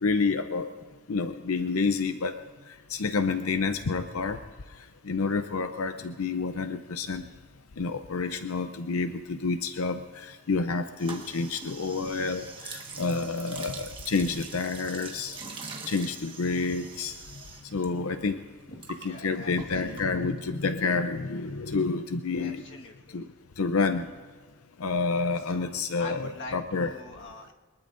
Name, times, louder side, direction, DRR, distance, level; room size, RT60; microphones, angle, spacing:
voice 1, 0.0-0.7 1.1-2.3 2.9-4.4 5.1-7.2 7.8-10.0 10.5-15.4 15.9-17.1 17.7-18.4 19.0-22.6 23.1-23.2 23.6-24.0 24.8-26.9, left 4 dB, 70° left, 8 dB, 0.7 m, -28 dB
sound 1, 11.0-17.9 18.1-20.5, right 4 dB, 25° right, 1.5 m, -43 dB
voice 2, 18.7-20.2 22.4-23.2 25.4-25.7 25.9-27.5, left 2 dB, 55° left, 1 dB, 1.7 m, -45 dB
23.0 x 21.0 x 2.6 m, 1.5 s
head